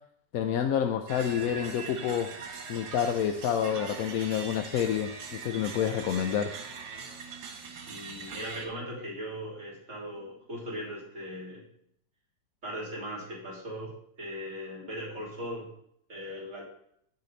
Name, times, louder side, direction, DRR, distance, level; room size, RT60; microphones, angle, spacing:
voice 1, 0.3-2.3 2.7-6.6, left 9 dB, 65° left, 7 dB, 0.9 m, -28 dB
sound 1, 1.1-8.7, right 5 dB, 80° right, 1.9 m, -41 dB
voice 2, 7.8-11.7 12.6-15.7 16.1-16.6, equal, 40° right, -4 dB, 3.4 m, -39 dB
9.8 x 6.7 x 3.9 m, 0.69 s
omnidirectional pair, 2.0 m